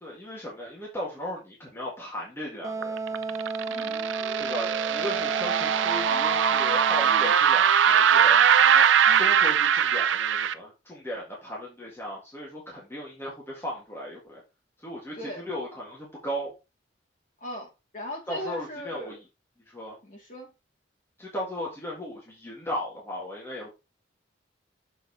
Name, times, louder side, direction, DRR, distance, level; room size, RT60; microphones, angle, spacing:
voice 1, 0.0-3.2 4.4-8.4 9.2-14.4 14.8-16.5 18.3-19.2 19.7-20.0 21.2-23.7, equal, 10° left, 1.8 m, -36 dB
Wind instrument woodwind instrument, 2.6-7.3, right 4 dB, 15° right, 0.6 m, -33 dB
sound 1, 2.8-10.5, right 8 dB, 75° right, 0.5 m, -21 dB
voice 2, 3.7-4.1 9.1-9.3 15.1-15.4 17.4-19.2 20.0-20.5, equal, 40° left, 2.8 m, -39 dB
6.8 x 4.6 x 4.2 m
head